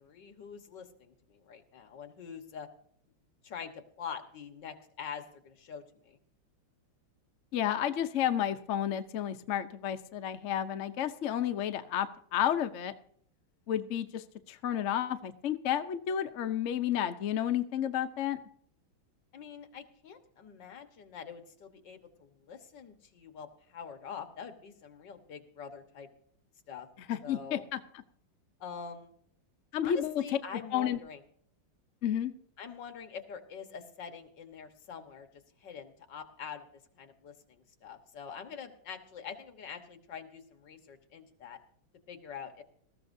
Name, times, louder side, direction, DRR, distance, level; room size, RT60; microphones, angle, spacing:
voice 1, 0.0-2.7 3.4-6.2 19.3-26.1 26.7-26.9 27.2-27.7 28.6-29.1 29.8-31.2 32.6-35.3 35.6-36.7 37.0-41.6 42.1-42.6, left 7 dB, 60° left, 7 dB, 1.9 m, -45 dB
voice 2, 7.5-12.9 13.7-18.4 27.1-27.8 29.7-30.2 30.7-31.0 32.0-32.3, left 10 dB, 75° left, 8 dB, 0.6 m, -31 dB
19.0 x 14.5 x 2.7 m, 0.63 s
omnidirectional pair, 2.4 m